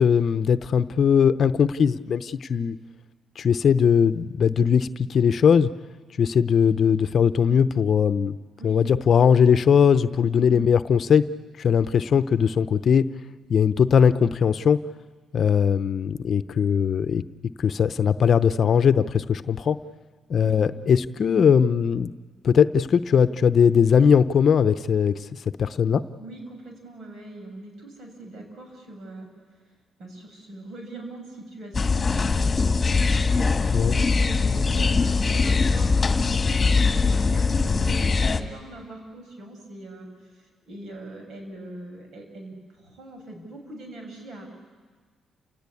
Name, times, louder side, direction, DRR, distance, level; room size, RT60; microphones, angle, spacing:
voice 1, 0.0-2.8 3.4-5.7 6.2-8.4 8.6-11.3 11.6-13.0 13.5-14.8 15.3-17.2 17.6-19.8 20.3-22.1 22.4-25.2 25.6-26.0 33.7-34.0, left 7 dB, 55° left, 13 dB, 0.8 m, -20 dB
voice 2, 26.2-29.3 30.0-33.2 33.6-44.5, right 1 dB, 65° right, 3 dB, 6.9 m, -41 dB
sound 1, 31.7-38.4, left 4 dB, 30° left, 1.6 m, -21 dB
30.0 x 17.5 x 8.5 m, 1.5 s
cardioid pair, 75°, 0 cm